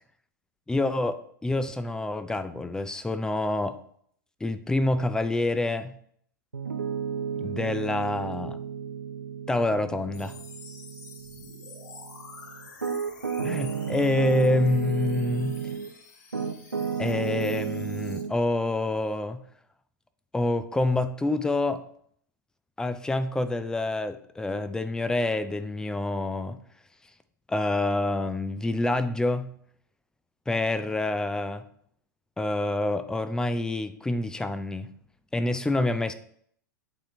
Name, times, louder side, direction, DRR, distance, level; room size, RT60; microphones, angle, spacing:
voice 1, 0.7-3.8 4.4-5.9 7.4-8.6 9.5-10.3 13.4-15.6 17.0-19.4 20.3-21.8 22.8-26.6 27.5-29.5 30.5-31.6 32.4-34.9 35.3-36.2, left 2 dB, 5° left, 0.4 m, -27 dB
Piano, 6.5-15.9 16.3-18.3, right 6 dB, 85° right, 0.6 m, -33 dB
sound 1, 10.1-18.2, left 4 dB, 60° left, 1.2 m, -49 dB
8.7 x 4.3 x 3.1 m
figure-of-eight pair, 95°, 10 cm